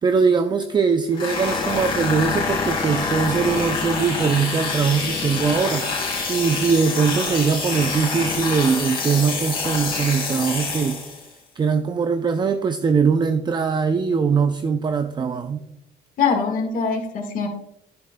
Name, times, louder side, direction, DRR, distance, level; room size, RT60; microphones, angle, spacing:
voice 1, 0.0-11.0 11.6-15.6, right 5 dB, 25° right, 8 dB, 0.5 m, -21 dB
sound 1, 1.1-11.3, left 4 dB, 30° left, 3.5 m, -26 dB
voice 2, 16.2-17.5, left 5 dB, 50° left, 2 dB, 1.6 m, -22 dB
10.5 x 10.0 x 2.2 m, 0.83 s
cardioid pair, 110°, 17 cm